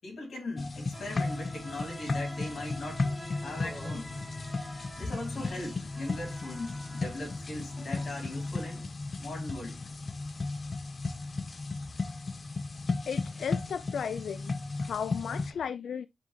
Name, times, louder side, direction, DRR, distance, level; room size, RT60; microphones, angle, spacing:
voice 1, 0.0-3.1 3.3-4.1 5.0-8.9 9.2-9.8, left 2 dB, 65° left, 2.5 m, -39 dB
sound 1, 0.6-15.5, left 3 dB, 45° left, 0.7 m, -35 dB
sound 2, 0.9-8.9, equal, 5° left, 2.1 m, -47 dB
voice 2, 13.1-14.5 14.8-16.1, left 7 dB, 85° left, 0.3 m, -35 dB
9.4 x 3.2 x 3.2 m
cardioid pair, 75°, 0 cm